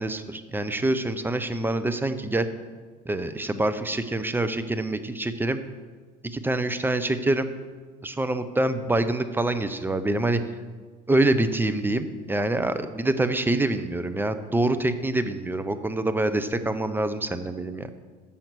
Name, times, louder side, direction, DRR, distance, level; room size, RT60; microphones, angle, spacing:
voice 1, 0.0-2.5 3.1-5.6 6.2-7.5 8.0-10.4 11.1-17.9, right 2 dB, 10° right, 10 dB, 0.6 m, -25 dB
7.1 x 5.9 x 6.7 m, 1.4 s
hypercardioid pair, 70°, 21 cm